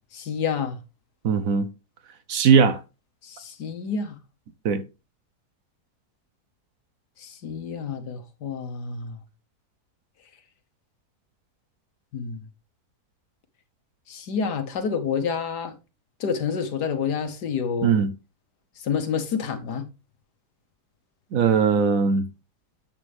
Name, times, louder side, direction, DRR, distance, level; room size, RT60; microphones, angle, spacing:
voice 1, 0.1-0.8 3.2-4.2 7.2-9.2 12.1-12.4 14.1-15.8 16.2-18.0 18.8-19.9, left 6 dB, 85° left, 1.8 m, -28 dB
voice 2, 1.2-1.7 2.3-2.8 4.6-4.8 17.8-18.1 21.3-22.3, right 6 dB, 60° right, 1.1 m, -19 dB
8.8 x 7.5 x 3.4 m
omnidirectional pair, 1.7 m